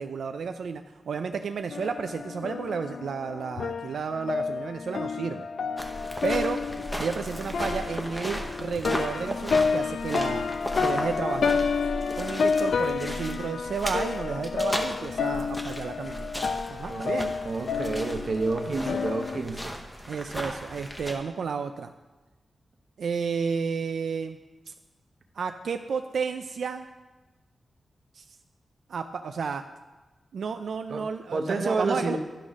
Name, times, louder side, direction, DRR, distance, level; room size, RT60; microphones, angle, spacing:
voice 1, 0.0-5.5 6.2-6.6 7.0-10.5 10.8-11.6 12.2-17.3 18.7-19.0 20.1-21.9 23.0-24.4 24.7-24.8 25.3-26.9 28.1-28.2 28.9-29.6 30.3-32.2, right 5 dB, 90° right, 7 dB, 0.3 m, -32 dB
sound 1, 1.7-19.4, left 5 dB, 70° left, 0.4 m, -30 dB
sound 2, 5.8-21.1, equal, 5° left, 0.8 m, -36 dB
voice 2, 16.9-17.2 17.4-19.7 20.4-20.5 30.9-31.0 31.3-32.2, right 3 dB, 55° right, 5 dB, 0.8 m, -29 dB
11.5 x 4.0 x 6.1 m, 1.2 s
wide cardioid pair, 170°, 0 cm